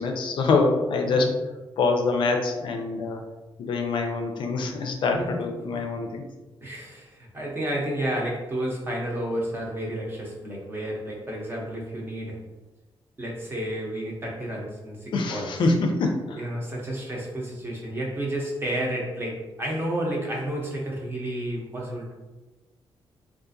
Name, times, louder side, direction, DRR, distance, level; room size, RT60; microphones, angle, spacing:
voice 1, 0.0-1.3 1.8-3.2 3.6-6.2 15.1-16.4, left 3 dB, 60° left, 3 dB, 0.4 m, -25 dB
voice 2, 5.1-5.4 5.7-5.8 6.6-12.4 13.2-15.5 16.4-22.1, right 1 dB, 25° right, -3 dB, 0.7 m, -31 dB
3.6 x 2.4 x 2.6 m, 1.1 s
wide cardioid pair, 165°, 9 cm